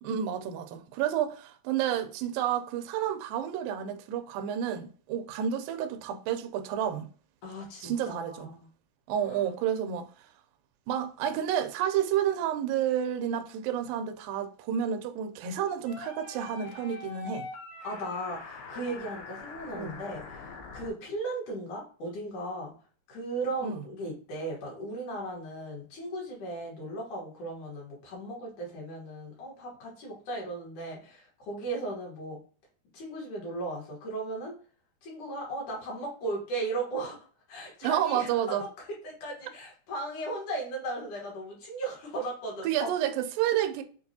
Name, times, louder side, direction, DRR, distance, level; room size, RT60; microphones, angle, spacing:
voice 1, 0.0-7.1 7.8-8.5 9.1-10.1 10.9-17.5 19.7-19.9 23.6-23.8 37.8-38.7 42.6-43.8, right 9 dB, 85° right, 1.9 m, -30 dB
voice 2, 7.4-8.7 9.2-9.5 17.8-22.7 23.1-32.4 32.9-34.5 35.0-37.2 37.5-42.9, right 2 dB, 65° left, 2.3 m, -36 dB
sound 1, 15.9-20.9, left 3 dB, 85° left, 2.8 m, -43 dB
6.0 x 2.4 x 2.7 m
omnidirectional pair, 4.4 m